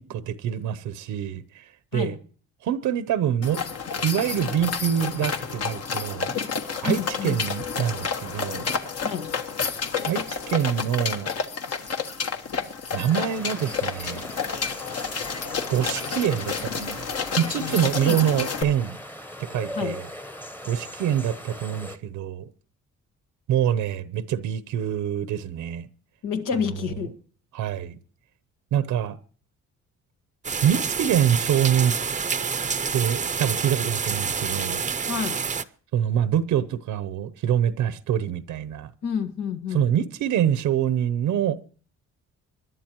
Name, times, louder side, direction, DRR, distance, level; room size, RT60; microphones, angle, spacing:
voice 1, 0.0-2.2 2.6-3.6 4.0-6.4 6.8-8.7 10.1-11.3 12.9-14.2 15.7-17.1 17.4-19.0 19.4-20.0 20.6-22.5 23.5-25.9 27.5-28.0 28.7-29.2 30.6-32.0 32.9-34.8 35.9-38.9 39.7-41.6, right 9 dB, 80° right, 0.8 m, -25 dB
sound 1, 3.4-18.6, left 6 dB, 55° left, 1.4 m, -30 dB
voice 2, 6.8-7.4 9.0-9.3 17.6-18.2 19.7-20.0 26.2-27.1 35.1-35.4 39.0-39.9, left 7 dB, 85° left, 1.7 m, -29 dB
sound 2, 13.1-22.0, equal, 5° left, 1.0 m, -39 dB
sound 3, 30.4-35.6, right 6 dB, 25° right, 0.6 m, -28 dB
25.5 x 11.5 x 3.0 m
cardioid pair, 90°, 30 cm